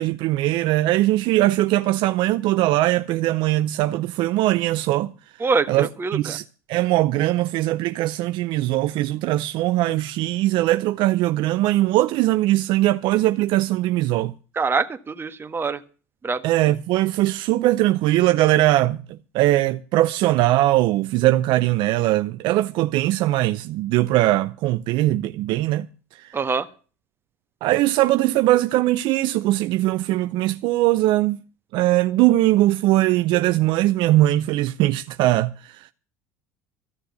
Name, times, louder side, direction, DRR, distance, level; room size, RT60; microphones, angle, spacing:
voice 1, 0.0-5.1 5.7-6.4 6.7-14.3 16.4-25.9 26.2-26.4 27.6-31.4 31.7-35.9, right 16 dB, 65° right, 0.6 m, -20 dB
voice 2, 5.4-6.4 14.5-15.8 16.2-16.4 26.3-26.7, right 4 dB, 25° right, 1.5 m, -24 dB
15.0 x 6.8 x 9.3 m
hypercardioid pair, 80°, 9 cm